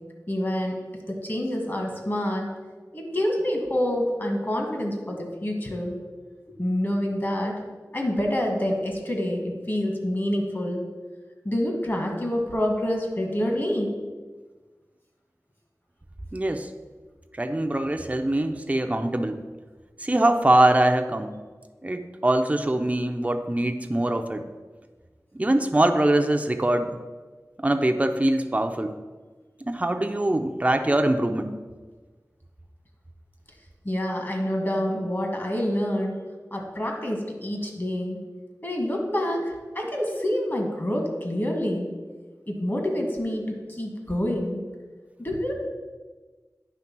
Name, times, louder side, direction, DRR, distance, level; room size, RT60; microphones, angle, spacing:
voice 1, 0.3-0.8 1.1-2.5 2.9-6.0 6.5-7.5 7.9-10.8 11.4-13.9 33.8-36.1 36.5-38.2 38.6-41.9 42.5-44.6 45.2-45.5, left 1 dB, 35° left, 1 dB, 1.6 m, -27 dB
voice 2, 16.3-16.7 17.4-19.4 20.0-21.3 21.8-24.5 25.3-26.9 27.6-29.0 29.7-31.5, right 1 dB, 20° right, 6 dB, 0.5 m, -23 dB
9.2 x 3.4 x 5.9 m, 1.4 s
wide cardioid pair, 55°, 6 cm